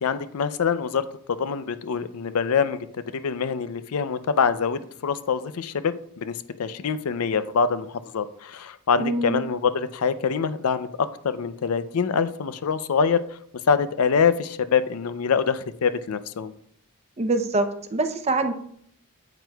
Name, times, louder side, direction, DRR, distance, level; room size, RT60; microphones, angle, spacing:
voice 1, 0.0-13.2 13.7-16.5, left 6 dB, 80° left, 13 dB, 0.5 m, -25 dB
voice 2, 9.0-9.4 17.2-18.5, right 2 dB, 30° right, 8 dB, 0.6 m, -24 dB
8.9 x 7.9 x 2.3 m, 0.67 s
head